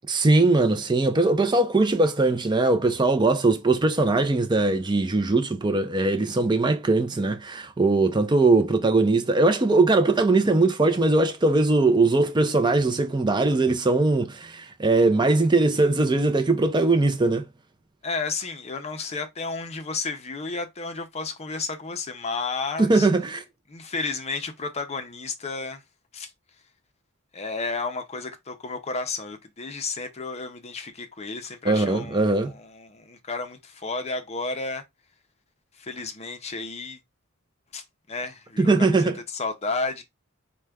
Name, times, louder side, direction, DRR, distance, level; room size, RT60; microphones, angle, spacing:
voice 1, 0.1-17.5 22.8-23.4 31.6-32.5 38.6-39.2, right 2 dB, 20° right, 0.4 m, -21 dB
voice 2, 18.0-23.1 23.7-25.8 26.1-26.3 27.3-34.8 35.8-37.0 37.7-40.0, left 4 dB, 30° left, 0.5 m, -32 dB
4.8 x 2.2 x 3.3 m
head